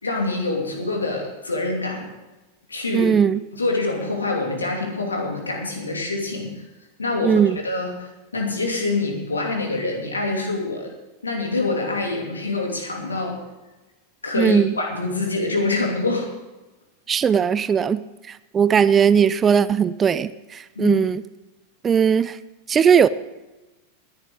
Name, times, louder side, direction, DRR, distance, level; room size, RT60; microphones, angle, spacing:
voice 1, 0.0-2.1 2.7-3.1 3.5-6.7 7.0-10.9 11.2-13.4 14.2-16.3 20.8-21.0, left 3 dB, 75° left, 2 dB, 2.7 m, -25 dB
voice 2, 2.9-3.4 7.2-7.6 14.4-14.7 17.1-18.0 18.5-21.2 21.8-22.4 22.7-23.1, right 7 dB, 20° right, 16 dB, 0.4 m, -18 dB
19.0 x 10.5 x 3.7 m, 1.1 s
figure-of-eight pair, 90°, 0 cm